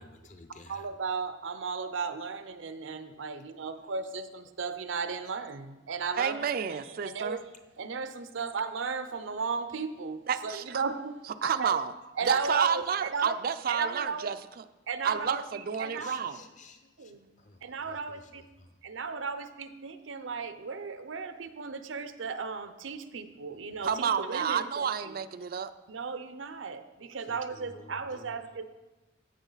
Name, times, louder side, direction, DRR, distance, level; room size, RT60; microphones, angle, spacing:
voice 1, 0.0-0.9 15.2-15.5 15.8-17.1 17.4-18.8 27.3-28.3, left 2 dB, 40° left, 7 dB, 0.8 m, -53 dB
voice 2, 0.7-7.5 7.8-11.8 12.2-13.4 13.7-14.3 14.9-16.2 17.0-17.3 17.6-18.5 18.8-25.2 25.9-28.6, right 5 dB, 85° right, 10 dB, 0.7 m, -35 dB
voice 3, 6.2-7.4 10.3-10.8 11.4-11.9 12.3-14.6 15.0-16.4 23.8-25.7, right 7 dB, 50° right, 12 dB, 0.4 m, -30 dB
15.0 x 6.3 x 4.0 m, 1.1 s
head